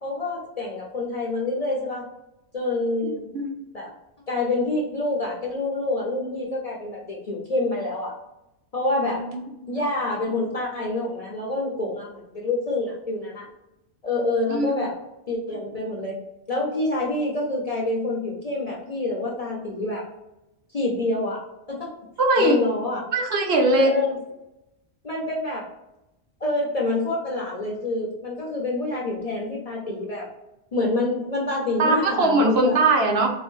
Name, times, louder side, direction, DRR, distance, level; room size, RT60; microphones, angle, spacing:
voice 1, 0.0-2.0 2.5-3.3 3.7-3.9 4.3-8.1 8.7-9.3 9.7-13.5 14.0-14.9 15.3-16.2 16.5-20.0 20.7-21.4 21.7-21.9 22.4-23.1 23.7-24.1 25.0-25.7 26.4-30.3 30.7-32.8, left 2 dB, 40° left, -2 dB, 0.6 m, -27 dB
voice 2, 9.0-9.4 14.5-14.8 22.2-22.6 23.1-23.9 31.8-33.3, right 2 dB, 65° right, 1 dB, 0.9 m, -20 dB
3.9 x 2.2 x 3.0 m, 0.91 s
omnidirectional pair, 1.2 m